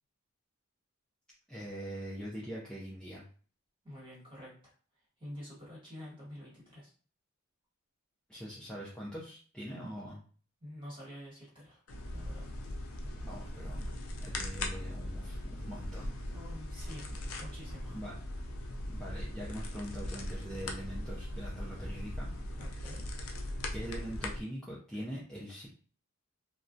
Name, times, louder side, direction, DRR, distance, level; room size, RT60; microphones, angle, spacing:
voice 1, 1.5-3.2 8.3-10.2 13.2-13.9 14.2-16.1 17.9-18.1 18.9-22.3 22.6-23.0 23.7-25.7, equal, 5° left, -7 dB, 0.4 m, -43 dB
voice 2, 3.8-4.7 5.2-6.9 10.6-11.8 12.1-12.5 16.3-17.1 17.4-18.0 22.6-23.0, left 1 dB, 25° right, -7 dB, 1.4 m, -48 dB
sound 1, 11.9-24.4, left 1 dB, 75° left, 0.4 m, -39 dB
2.3 x 2.1 x 2.5 m, 0.41 s
head